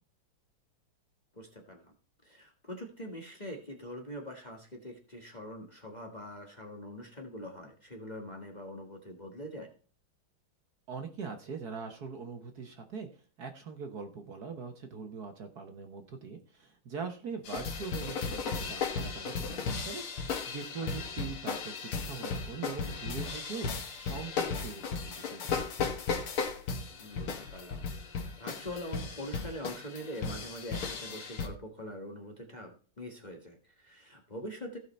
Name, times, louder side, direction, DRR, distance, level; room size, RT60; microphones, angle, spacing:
voice 1, 1.3-1.9 2.2-9.7 20.8-20.9 27.0-34.8, equal, 25° left, 2 dB, 1.4 m, -44 dB
voice 2, 10.9-13.1 13.4-25.9, right 5 dB, 55° right, 6 dB, 1.5 m, -42 dB
sound 1, 17.5-31.5, left 5 dB, 85° left, 2.4 m, -36 dB
15.5 x 5.7 x 4.2 m, 0.40 s
omnidirectional pair, 2.3 m